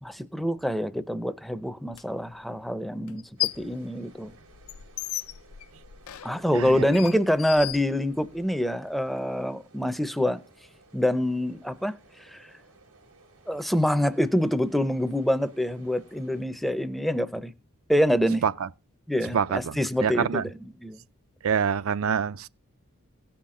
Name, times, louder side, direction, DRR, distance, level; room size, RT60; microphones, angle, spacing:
voice 1, 0.0-4.3 6.2-10.4 10.9-12.5 13.5-17.5 17.9-18.4 19.1-21.0, equal, ahead, 0.5 m, -26 dB
sound 1, 1.9-2.0 3.1-3.8 4.1-8.5, left 16 dB, 75° left, 0.5 m, -35 dB
sound 2, 3.4-16.4, right 3 dB, 90° right, 3.8 m, -57 dB
voice 2, 6.5-6.8 18.4-18.7 19.3-20.5 21.4-22.5, right 7 dB, 65° right, 0.5 m, -26 dB
17.0 x 5.8 x 3.7 m
head